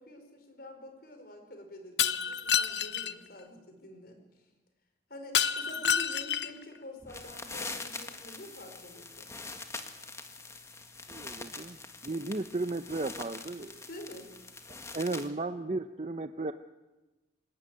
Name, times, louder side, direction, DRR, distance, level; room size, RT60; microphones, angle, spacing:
voice 1, 0.0-4.5 5.1-9.3 13.9-14.3, left 1 dB, 60° left, 6 dB, 5.0 m, -47 dB
Shatter, 2.0-3.1 5.3-6.6, left 8 dB, 80° left, 1.0 m, -28 dB
sound 1, 7.0-15.3, left 3 dB, 15° left, 1.7 m, -44 dB
voice 2, 11.1-11.8 12.0-13.8 14.9-16.5, right 2 dB, 40° right, 9 dB, 0.7 m, -34 dB
26.0 x 17.0 x 9.8 m, 1.1 s
head